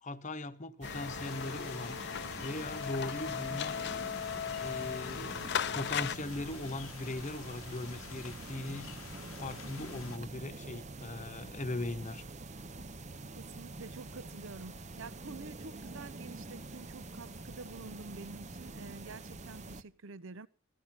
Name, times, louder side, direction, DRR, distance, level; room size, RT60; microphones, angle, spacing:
voice 1, 0.0-2.0 2.4-3.8 4.6-8.9 9.3-12.2, left 2 dB, 35° left, 1.0 m, -39 dB
sound 1, 0.8-6.2, left 8 dB, 55° left, 0.7 m, -37 dB
sound 2, 0.8-19.8, right 2 dB, 35° right, 0.9 m, -46 dB
sound 3, 1.2-10.2, left 7 dB, 75° left, 1.1 m, -49 dB
voice 2, 13.4-20.5, right 3 dB, 65° right, 0.8 m, -48 dB
16.0 x 13.5 x 5.9 m
head